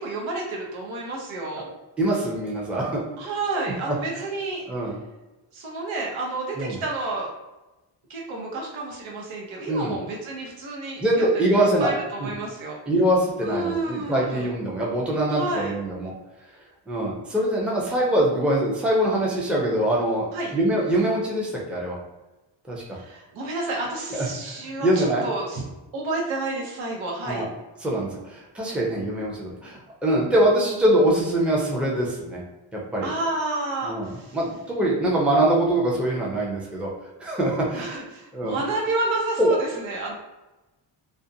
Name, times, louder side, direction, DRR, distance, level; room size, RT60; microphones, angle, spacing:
voice 1, 0.0-1.7 3.2-4.6 5.5-7.3 8.1-12.8 13.4-14.5 15.3-15.7 20.3-20.5 22.9-25.6 25.9-27.5 33.0-34.4 37.7-40.1, right 2 dB, 80° right, -2 dB, 0.8 m, -30 dB
voice 2, 2.0-3.0 3.9-4.2 4.7-5.0 6.5-6.8 9.7-10.0 11.0-11.9 12.2-12.3 12.9-16.1 16.9-22.0 22.7-22.8 24.1-24.3 24.8-25.2 27.2-27.5 27.8-32.4 32.7-33.1 33.8-36.9 37.2-38.0 38.3-38.6 39.4-39.6, right 1 dB, ahead, -4 dB, 0.5 m, -23 dB
2.5 x 2.1 x 2.6 m, 1.1 s
cardioid pair, 80°, 46 cm